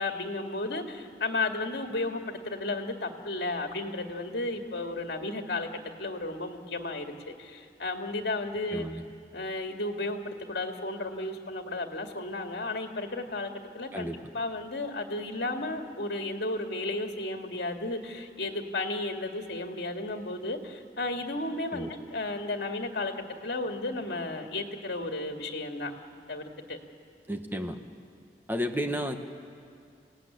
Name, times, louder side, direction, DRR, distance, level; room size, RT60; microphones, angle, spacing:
voice 1, 0.0-8.9 9.3-23.1 23.4-26.8, left 2 dB, 65° left, 4 dB, 2.1 m, -33 dB
voice 2, 8.7-9.0 13.9-14.2 21.7-21.9 27.3-27.8 28.5-29.2, equal, 10° right, 5 dB, 1.3 m, -32 dB
27.5 x 17.5 x 9.8 m, 2.3 s
head